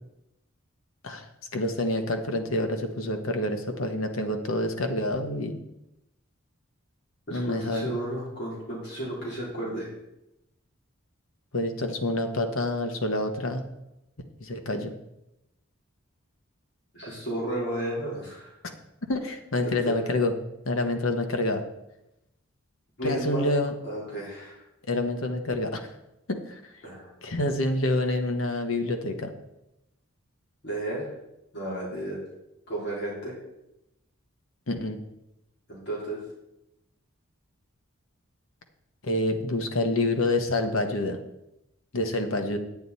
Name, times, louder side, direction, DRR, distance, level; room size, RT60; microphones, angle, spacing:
voice 1, 1.5-5.6 7.3-7.9 11.5-13.6 14.4-14.9 19.1-20.3 20.6-21.6 23.0-23.7 24.9-25.9 26.3-26.6 27.2-29.3 34.7-35.0 39.0-41.2 41.9-42.6, left 1 dB, 75° left, 5 dB, 1.2 m, -27 dB
voice 2, 7.3-9.9 16.9-18.5 19.6-20.0 23.0-23.5 23.8-24.6 26.8-27.1 30.6-31.1 31.5-32.2 32.7-33.3 35.7-36.2, right 1 dB, 55° left, -5 dB, 3.6 m, -33 dB
9.4 x 9.4 x 4.2 m, 0.88 s
head